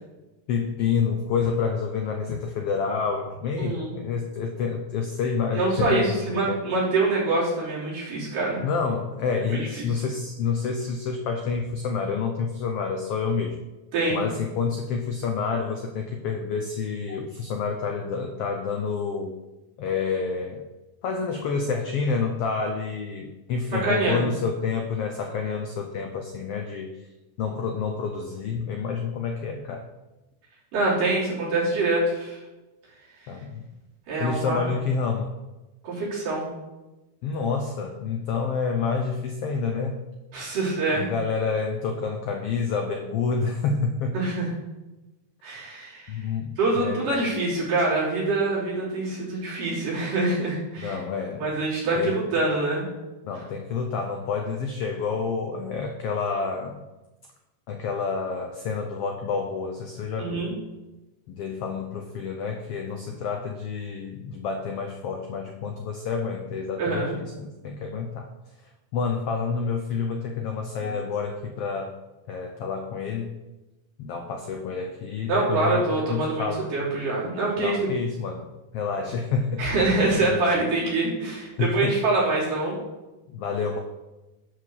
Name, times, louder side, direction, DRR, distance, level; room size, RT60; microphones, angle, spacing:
voice 1, 0.5-6.6 8.6-13.6 14.1-19.4 19.8-20.6 21.0-27.1 27.4-29.9 33.3-33.7 34.2-35.3 37.2-40.1 40.9-44.2 46.1-47.2 50.8-51.5 51.9-52.2 53.2-56.8 57.7-60.6 61.3-68.3 68.9-72.0 72.3-73.4 74.0-76.7 77.6-78.5 78.7-79.7 80.1-80.6 81.6-82.0 83.3-83.8, left 5 dB, 85° left, 4 dB, 1.3 m, -28 dB
voice 2, 3.6-3.9 5.5-8.6 9.5-9.9 13.9-14.2 23.7-24.3 30.7-32.4 33.2-33.3 34.1-34.6 35.8-36.5 40.3-41.1 44.1-44.5 45.4-46.2 46.6-51.0 51.4-52.9 60.2-60.6 66.8-67.1 70.8-71.0 75.3-76.5 76.7-77.8 79.6-82.8, right 2 dB, 85° right, -7 dB, 5.1 m, -25 dB
11.0 x 4.8 x 6.4 m, 1.1 s
omnidirectional pair, 3.7 m